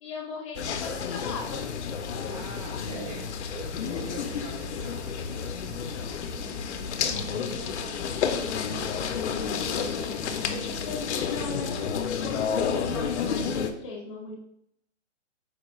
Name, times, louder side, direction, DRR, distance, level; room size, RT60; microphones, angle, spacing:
voice 1, 0.0-1.7 7.0-8.8 9.1-14.4, left 2 dB, 25° left, -1 dB, 0.6 m, -39 dB
sound 1, 0.5-13.7, left 6 dB, 70° left, 0.5 m, -31 dB
voice 2, 2.3-5.1, right 2 dB, 30° right, 1 dB, 0.5 m, -42 dB
sound 2, 3.5-9.9, right 3 dB, 85° right, 0.8 m, -49 dB
4.8 x 2.2 x 3.0 m, 0.75 s
hypercardioid pair, 145°, 36 cm